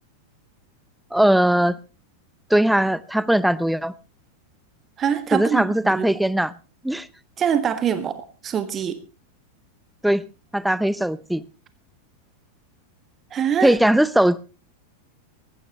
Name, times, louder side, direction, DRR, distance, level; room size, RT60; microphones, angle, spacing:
voice 1, 1.1-1.8 2.5-3.9 5.3-6.5 6.8-7.1 10.0-10.2 10.5-11.4 13.6-14.4, right 1 dB, ahead, 0.7 m, -19 dB
voice 2, 5.0-6.1 7.4-9.0 13.3-13.7, right 8 dB, 25° right, 1.4 m, -24 dB
19.0 x 15.0 x 3.0 m
figure-of-eight pair, 90°, 0 cm